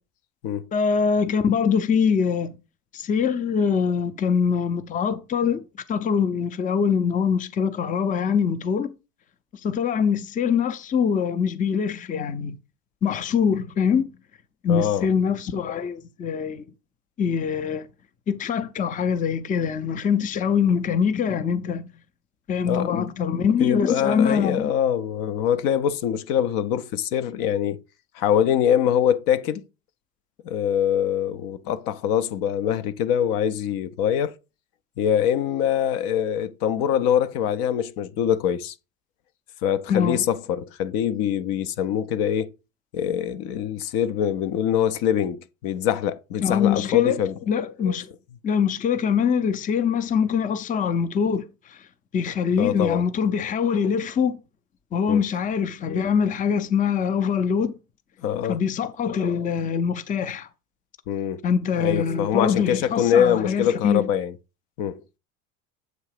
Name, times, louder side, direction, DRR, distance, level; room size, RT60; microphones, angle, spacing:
voice 1, 0.7-2.5 2.9-5.6 5.9-8.9 9.6-12.6 13.0-14.1 14.6-16.6 17.2-17.9 18.3-21.9 22.5-24.7 39.9-40.2 46.4-47.2 47.5-48.1 48.4-51.8 52.1-54.4 54.9-57.7 58.5-60.5 61.4-64.0, left 6 dB, 20° left, 0.5 m, -23 dB
voice 2, 14.7-15.1 22.6-27.8 28.1-29.6 30.4-34.3 35.0-38.7 39.6-42.5 42.9-47.3 52.6-53.0 55.1-55.2 58.2-58.6 61.1-61.4 61.8-64.3 64.8-65.0, left 9 dB, 60° left, 0.6 m, -24 dB
7.8 x 2.8 x 4.8 m
hypercardioid pair, 90°, 38 cm